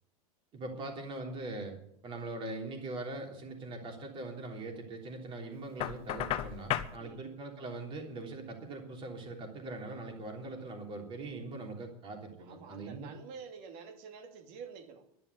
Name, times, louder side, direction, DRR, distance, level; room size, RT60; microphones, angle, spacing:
voice 1, 0.5-1.8 2.0-13.1, right 2 dB, 25° right, 2 dB, 3.3 m, -41 dB
Knock, 5.8-7.0, left 12 dB, 30° left, 0.9 m, -34 dB
voice 2, 12.4-15.0, right 6 dB, 45° right, 6 dB, 2.5 m, -48 dB
11.0 x 11.0 x 9.5 m, 0.73 s
supercardioid pair, 155°, 19 cm